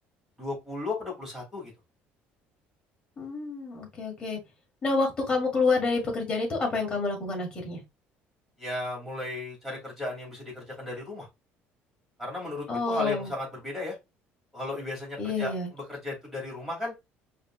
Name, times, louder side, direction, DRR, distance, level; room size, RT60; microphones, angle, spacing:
voice 1, 0.4-1.7 8.6-11.3 12.2-14.0 14.5-15.5 15.9-16.9, left 2 dB, 5° right, 2.7 m, -35 dB
voice 2, 3.2-4.4 4.8-7.8 12.7-13.3 15.2-15.7, left 3 dB, 20° left, 1.7 m, -28 dB
5.0 x 3.0 x 2.4 m
cardioid pair, 165°, 4 cm